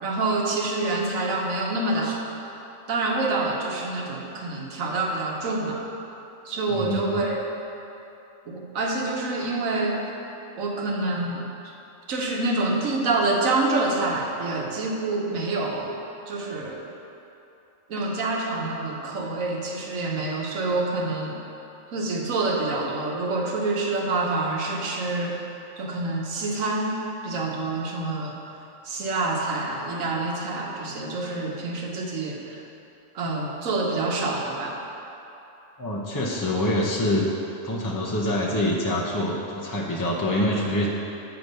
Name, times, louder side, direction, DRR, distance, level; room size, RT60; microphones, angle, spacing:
voice 1, 0.0-2.3 2.9-5.8 6.4-7.4 8.5-10.0 10.5-11.4 12.1-15.9 16.3-16.8 17.9-21.4 21.9-25.4 25.8-28.3 28.8-32.6 33.1-34.8, right 2 dB, 80° right, -1 dB, 1.4 m, -27 dB
voice 2, 6.7-7.2 35.8-37.3 37.6-40.9, left 1 dB, 30° left, -4 dB, 0.4 m, -25 dB
7.9 x 5.0 x 5.3 m, 2.9 s
omnidirectional pair, 1.4 m